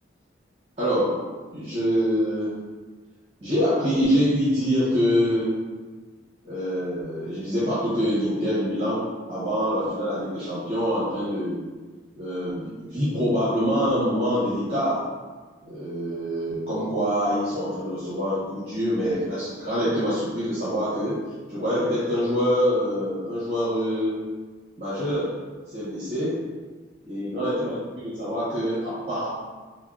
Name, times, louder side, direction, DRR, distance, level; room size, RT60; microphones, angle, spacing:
voice 1, 0.8-1.2 1.5-2.6 3.4-5.5 6.4-11.6 12.2-15.1 15.6-21.2 21.5-24.2 24.8-25.3 25.7-26.4 27.0-29.3, equal, 30° right, -11 dB, 0.7 m, -25 dB
3.4 x 2.1 x 2.3 m, 1.3 s
head